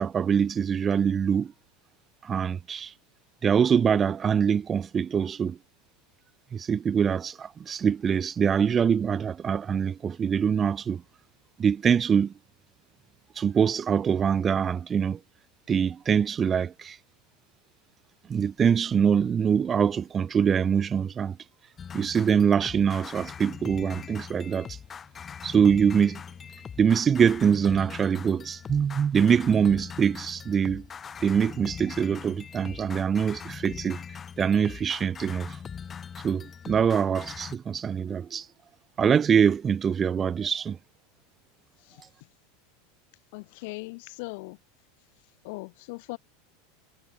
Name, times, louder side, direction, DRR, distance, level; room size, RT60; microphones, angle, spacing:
voice 1, 0.0-1.5 2.2-2.9 3.4-5.6 6.5-11.0 11.6-12.3 13.4-15.2 15.7-17.0 18.3-21.4 21.9-24.8 25.4-26.2 26.8-30.9 31.2-34.0 34.4-35.6 36.2-38.5 39.0-40.8, right 7 dB, 25° right, 0.5 m, -24 dB
sound 1, 21.8-37.6, left 7 dB, 25° left, 1.6 m, -41 dB
voice 2, 43.3-44.6 45.4-46.2, left 28 dB, 55° left, 0.8 m, -39 dB
figure-of-eight pair, 85°, 0 cm